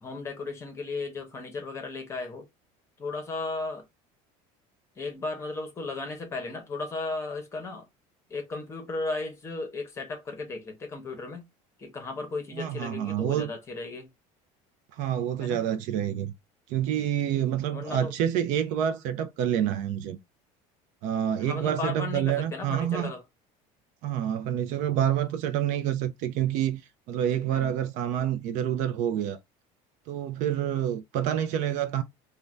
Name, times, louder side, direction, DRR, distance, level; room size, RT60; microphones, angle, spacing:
voice 1, 0.0-2.5 3.0-3.8 5.0-7.9 8.3-11.5 11.8-14.1 15.4-15.7 17.7-18.1 21.4-23.2 27.5-27.8, left 3 dB, 20° left, 0.8 m, -35 dB
voice 2, 12.5-13.5 14.9-16.3 16.7-20.2 21.0-23.1 24.0-26.8 27.1-29.4 30.1-32.0, right 10 dB, 55° right, 0.4 m, -27 dB
2.5 x 2.2 x 3.1 m
cardioid pair, 170°, 15 cm